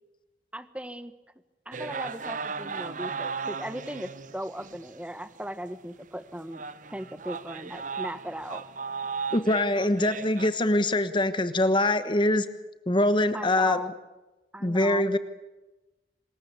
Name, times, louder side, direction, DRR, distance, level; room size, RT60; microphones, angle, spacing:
voice 1, 0.5-1.1 1.7-6.6 6.9-8.6 13.3-13.9 14.5-15.2, right 1 dB, 5° right, 12 dB, 1.3 m, -37 dB
sound 1, 1.7-4.9 5.4-5.5 6.0-6.1 6.5-10.5, right 5 dB, 45° right, 1.1 m, -36 dB
voice 2, 9.3-12.5 12.9-13.8 14.6-15.2, left 1 dB, 30° left, 11 dB, 1.3 m, -23 dB
26.0 x 21.0 x 8.4 m, 1.1 s
head